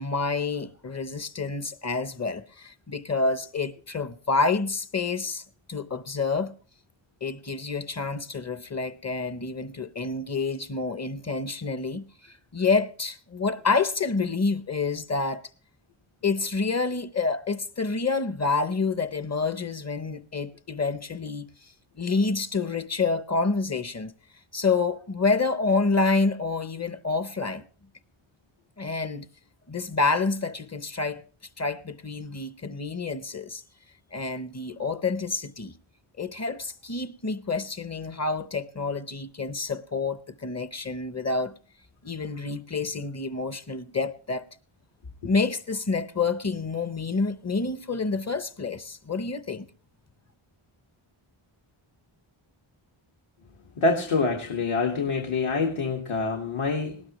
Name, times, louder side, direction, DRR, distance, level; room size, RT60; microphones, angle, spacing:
voice 1, 0.0-5.4 5.7-6.5 7.2-15.4 16.2-21.5 22.0-24.1 24.5-27.6 28.8-29.3 29.7-31.2 31.6-33.6 34.1-35.8 36.2-41.5 42.0-44.4 45.2-49.7, left 4 dB, 30° left, 0.7 m, -28 dB
voice 2, 53.8-57.0, left 4 dB, 80° left, 1.7 m, -26 dB
19.5 x 17.5 x 3.0 m
wide cardioid pair, 85°, 50 cm